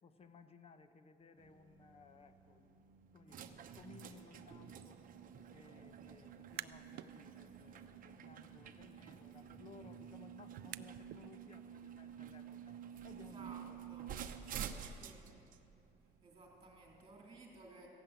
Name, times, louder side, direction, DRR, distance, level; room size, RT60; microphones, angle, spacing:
voice 1, 0.0-2.8 3.1-5.0 5.5-12.8 13.0-13.8 14.4-14.5, left 4 dB, 35° left, 9 dB, 0.9 m, -60 dB
sound 1, 1.4-17.0, right 8 dB, 55° right, 0.8 m, -50 dB
Tap, 5.8-11.1 13.7-13.8, equal, 10° left, 3.3 m, -67 dB
sound 2, 6.3-7.1 7.5-11.3, right 16 dB, 75° right, 0.4 m, -52 dB
voice 2, 13.1-13.6 13.9-14.1 14.8-15.3 16.2-17.9, right 3 dB, 30° right, -1 dB, 3.3 m, -57 dB
15.0 x 7.6 x 9.2 m, 2.8 s
cardioid pair, 110°, 17 cm